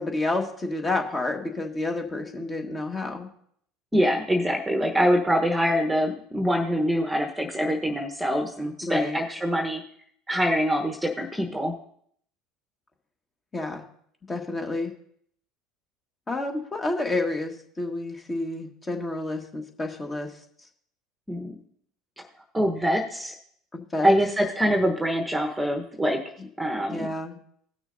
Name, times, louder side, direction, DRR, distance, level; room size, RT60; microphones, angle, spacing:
voice 1, 0.0-3.3 8.8-9.2 13.5-13.8 14.3-14.9 16.3-20.3 23.7-24.1 26.9-27.4, left 2 dB, 25° left, 3 dB, 1.5 m, -29 dB
voice 2, 3.9-9.8 10.3-11.7 21.3-21.5 22.2-22.3 22.5-23.3 24.0-26.2 26.6-27.1, equal, 5° right, 3 dB, 1.0 m, -24 dB
18.0 x 6.2 x 2.6 m, 0.65 s
hypercardioid pair, 75°, 0 cm